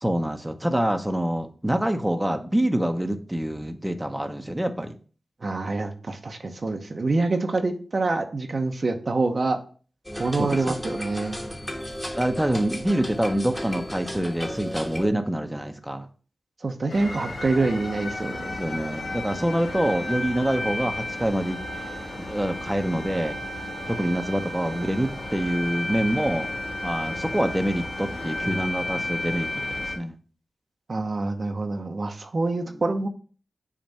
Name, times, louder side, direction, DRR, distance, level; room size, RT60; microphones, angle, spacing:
voice 1, 0.0-5.0 10.4-10.8 12.2-16.1 18.4-21.6 22.3-23.4 23.9-26.5 26.8-30.1, right 1 dB, 10° right, 6 dB, 0.8 m, -26 dB
voice 2, 5.4-9.6 10.2-11.4 16.6-18.5 30.9-33.1, right 3 dB, 60° right, 5 dB, 0.9 m, -26 dB
sound 1, 10.1-15.1, equal, 10° left, 1.3 m, -34 dB
sound 2, 16.9-30.0, left 1 dB, 75° left, 1.7 m, -33 dB
7.2 x 2.5 x 5.6 m, 0.40 s
cardioid pair, 45°, 0 cm